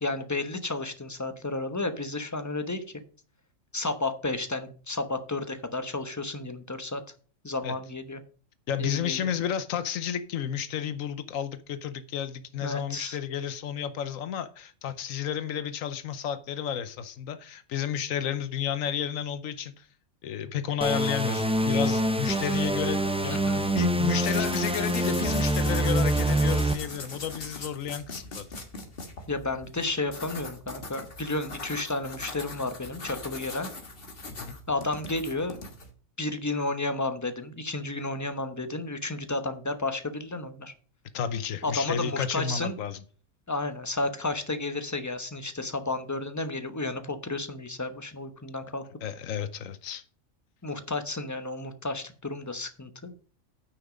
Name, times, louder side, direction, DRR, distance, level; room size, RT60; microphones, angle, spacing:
voice 1, 0.0-2.8 3.7-7.0 7.4-8.2 8.8-9.3 12.6-13.2 23.3-23.6 29.3-33.7 34.7-35.6 36.2-40.7 41.6-42.8 43.5-48.8 50.6-53.1, left 2 dB, 15° left, 0.9 m, -32 dB
voice 2, 8.7-19.9 20.2-28.4 34.3-34.6 41.1-43.0 49.0-50.0, left 8 dB, 90° left, 1.2 m, -32 dB
sound 1, 20.8-26.7, right 1 dB, 5° right, 0.6 m, -25 dB
sound 2, 24.2-35.9, left 3 dB, 45° left, 1.8 m, -41 dB
9.7 x 5.8 x 5.1 m
omnidirectional pair, 1.3 m